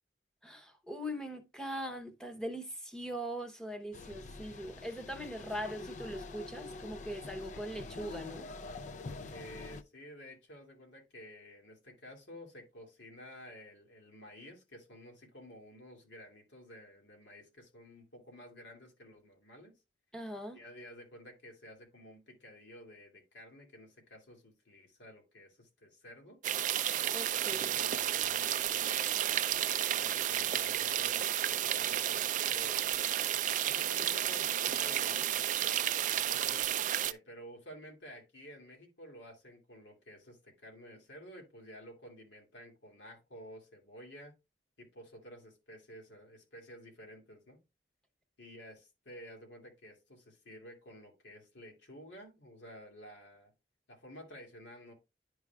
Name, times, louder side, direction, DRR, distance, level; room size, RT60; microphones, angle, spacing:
voice 1, 0.4-8.5 20.1-20.6 27.1-27.7, equal, 5° left, 0.8 m, -41 dB
sound 1, 3.9-9.8, left 3 dB, 40° left, 0.4 m, -45 dB
voice 2, 9.3-19.8 20.5-26.4 27.4-33.1 33.6-35.3 36.1-44.4 44.8-47.6 48.4-53.5 53.9-54.9, equal, 90° left, 2.4 m, -52 dB
sound 2, 26.4-37.1, right 11 dB, 45° right, 0.4 m, -32 dB
10.5 x 4.6 x 2.3 m
head